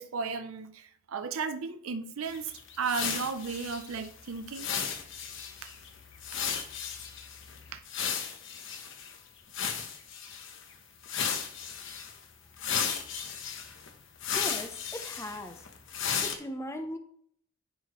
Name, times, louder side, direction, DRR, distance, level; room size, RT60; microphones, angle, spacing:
voice 1, 0.0-2.5 2.8-4.7 5.6-5.7 7.7-7.8, right 5 dB, 70° right, 0.6 m, -34 dB
sound 1, 2.3-9.2 9.5-10.6 11.0-12.2 12.6-16.4, left 7 dB, 60° left, 0.9 m, -35 dB
voice 2, 14.3-15.6 16.2-17.0, left 1 dB, 15° left, 0.6 m, -39 dB
10.0 x 4.7 x 3.0 m
head